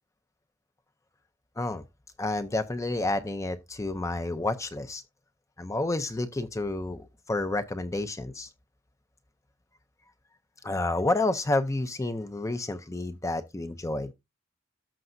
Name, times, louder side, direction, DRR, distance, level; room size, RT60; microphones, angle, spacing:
voice 1, 2.2-5.0 5.6-8.5 10.6-14.1, left 2 dB, 15° left, 0.5 m, -30 dB
13.5 x 5.3 x 2.6 m
head